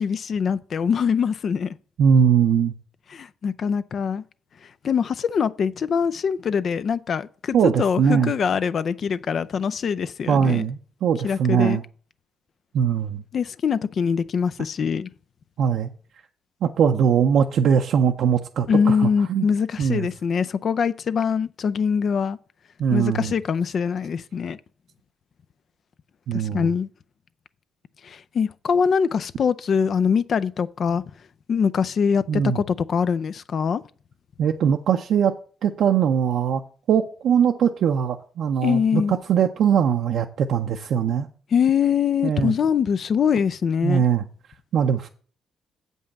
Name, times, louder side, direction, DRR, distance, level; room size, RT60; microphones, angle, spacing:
voice 1, 0.0-1.7 3.1-4.2 4.8-10.7 11.2-11.8 13.3-15.1 18.7-22.4 22.9-24.6 26.3-26.9 28.0-31.0 31.5-33.8 38.6-39.1 41.5-44.0, left 6 dB, 55° left, 0.5 m, -23 dB
voice 2, 2.0-2.7 7.5-8.3 10.3-11.8 12.7-13.2 15.6-15.9 16.6-19.5 19.8-20.1 22.8-23.3 26.3-26.7 32.3-32.6 34.4-35.3 35.6-36.6 36.9-41.3 42.2-42.5 43.8-44.3 44.7-45.1, right 8 dB, 70° right, 0.6 m, -21 dB
7.6 x 5.4 x 7.1 m
cardioid pair, 90°, 0 cm